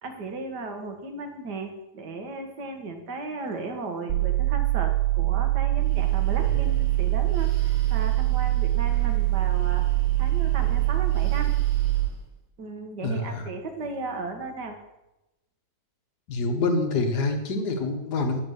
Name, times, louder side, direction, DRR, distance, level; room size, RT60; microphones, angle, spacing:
voice 1, 0.0-9.9 10.2-11.5 12.6-14.8, right 3 dB, 60° right, 5 dB, 2.0 m, -36 dB
sound 1, 4.1-12.1, right 18 dB, 80° right, 1.3 m, -23 dB
Breathing, 5.6-12.3, right 2 dB, 35° right, 2.2 m, -39 dB
voice 2, 13.0-13.5 16.3-18.4, left 3 dB, 60° left, 4 dB, 1.9 m, -26 dB
10.5 x 6.8 x 6.5 m, 0.94 s
omnidirectional pair, 2.1 m